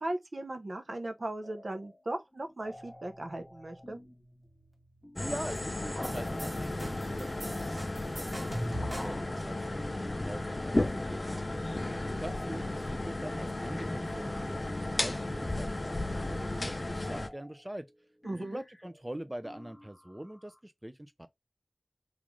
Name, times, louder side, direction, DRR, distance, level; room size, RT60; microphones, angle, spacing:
voice 1, 0.0-4.0 18.2-18.6, right 1 dB, 60° right, 0.6 m, -37 dB
sound 1, 1.4-2.1 2.3-20.6, left 1 dB, 20° left, 1.4 m, -54 dB
voice 2, 5.1-17.9 18.4-21.3, right 1 dB, 15° right, 0.3 m, -44 dB
sound 2, 5.2-17.3, left 2 dB, 40° left, 0.5 m, -34 dB
sound 3, 6.0-9.3, equal, 40° right, 2.0 m, -41 dB
3.1 x 2.4 x 3.5 m
wide cardioid pair, 65°, 0 cm